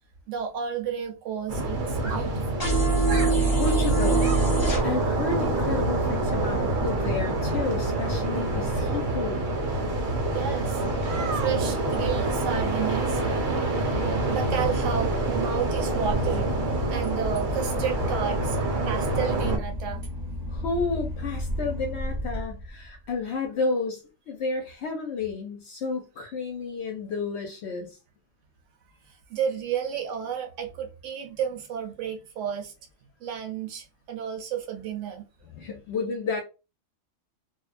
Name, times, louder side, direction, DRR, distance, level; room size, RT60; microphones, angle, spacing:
voice 1, 0.3-2.5 10.3-10.8 11.3-18.6 18.8-20.0 29.0-32.7 33.2-35.2, right 8 dB, 70° right, 0.9 m, -32 dB
sound 1, 1.5-19.6, right 2 dB, 90° right, 1.2 m, -27 dB
sound 2, 2.6-4.8, right 3 dB, 20° left, 0.8 m, -23 dB
voice 2, 3.4-9.4 20.5-28.0 35.5-36.4, left 4 dB, 65° left, 0.7 m, -31 dB
Boat Water vehicle / Engine, 14.2-23.1, left 1 dB, 25° right, 0.6 m, -34 dB
2.5 x 2.1 x 2.4 m
omnidirectional pair, 1.4 m